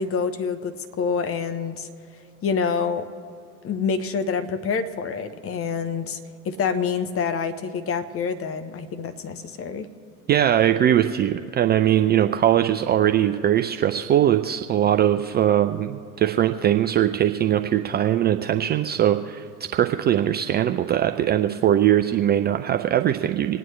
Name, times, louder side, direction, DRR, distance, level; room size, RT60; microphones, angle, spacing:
voice 1, 0.0-1.9 2.4-3.1 3.6-6.2 6.4-9.9, left 5 dB, 30° left, 9 dB, 1.0 m, -27 dB
voice 2, 10.3-19.4 19.7-23.6, right 11 dB, 25° right, 7 dB, 0.4 m, -21 dB
27.0 x 9.2 x 3.2 m, 2.6 s
hypercardioid pair, 80°, 44 cm